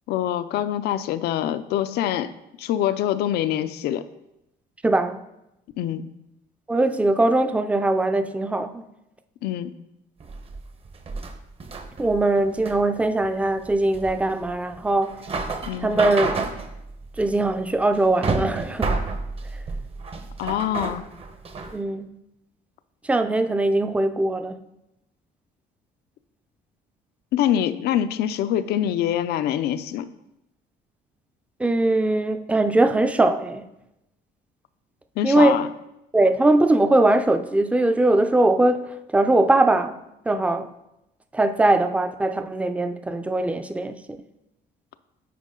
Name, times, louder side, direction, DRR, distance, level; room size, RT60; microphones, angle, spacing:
voice 1, 0.1-2.3 2.6-4.0 5.8-6.1 9.4-9.7 15.7-15.9 20.4-21.0 27.3-30.1 35.2-35.7, left 11 dB, 75° left, 0.5 m, -24 dB
voice 2, 4.8-5.2 6.7-8.8 12.0-15.1 15.8-16.4 17.2-19.0 21.7-22.1 23.1-24.6 31.6-33.7 35.2-35.6 36.1-40.0 40.3-40.7 41.3-44.0, right 2 dB, 10° right, 0.5 m, -21 dB
sound 1, 10.2-21.8, right 3 dB, 35° right, 0.9 m, -30 dB
9.3 x 4.9 x 3.7 m
cardioid pair, 110°, 17 cm